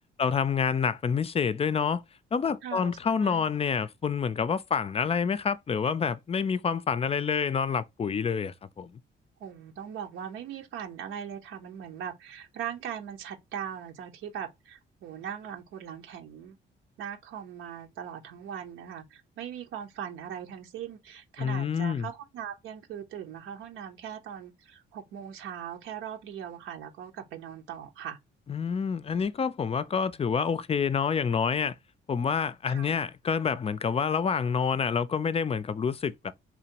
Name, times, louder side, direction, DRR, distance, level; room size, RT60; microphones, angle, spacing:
voice 1, 0.2-2.0 2.3-9.0 21.4-22.1 28.5-31.8 32.1-36.3, left 6 dB, 30° left, 0.4 m, -28 dB
voice 2, 2.6-3.4 9.4-16.6 17.0-28.2 32.7-32.9, right 9 dB, 90° right, 1.0 m, -40 dB
4.0 x 2.9 x 2.9 m
cardioid pair, 90°, 20 cm